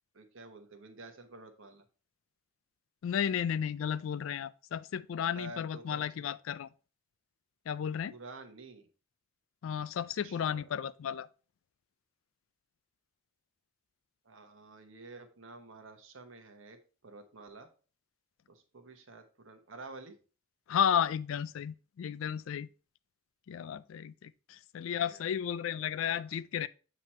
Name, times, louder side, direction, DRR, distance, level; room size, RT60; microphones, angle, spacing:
voice 1, 0.1-1.8 5.3-6.2 8.1-8.9 10.2-10.7 14.2-17.7 18.5-20.2 24.9-25.2 26.2-26.4, right 3 dB, 75° right, 1.0 m, -50 dB
voice 2, 3.0-6.7 7.7-8.1 9.6-11.3 20.7-22.7 23.5-26.7, left 8 dB, 75° left, 0.3 m, -33 dB
7.4 x 3.0 x 4.3 m
head